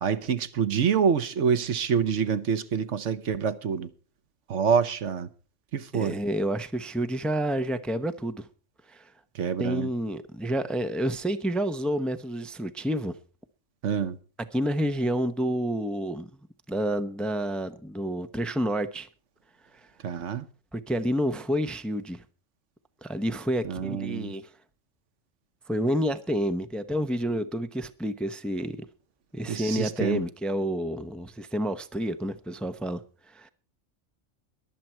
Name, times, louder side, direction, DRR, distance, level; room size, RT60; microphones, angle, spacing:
voice 1, 0.0-3.9 4.5-5.3 5.7-6.2 9.3-9.9 13.8-14.2 20.0-20.5 23.6-24.3 29.5-30.2, right 7 dB, 70° right, 1.2 m, -26 dB
voice 2, 5.9-8.5 8.9-9.0 9.6-13.1 14.5-16.3 16.7-19.1 20.7-22.2 23.0-24.5 25.7-28.8 29.3-33.0 33.3-33.5, equal, ahead, 0.7 m, -29 dB
22.5 x 7.7 x 4.4 m
omnidirectional pair, 1.3 m